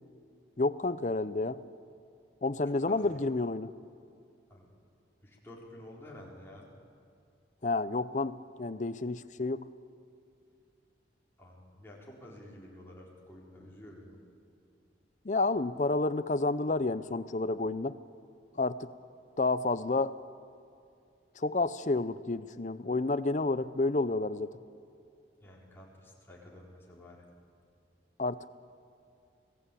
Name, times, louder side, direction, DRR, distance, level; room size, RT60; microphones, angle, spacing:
voice 1, 0.6-1.6 2.4-3.7 7.6-9.7 15.2-18.0 18.6-18.9 19.4-20.1 21.4-24.5 28.2-28.6, left 3 dB, 40° left, 15 dB, 0.6 m, -30 dB
voice 2, 2.7-3.2 4.5-4.7 5.2-6.7 11.4-14.2 25.4-27.3, left 1 dB, 15° left, -4 dB, 4.2 m, -50 dB
27.0 x 18.0 x 8.5 m, 2.5 s
head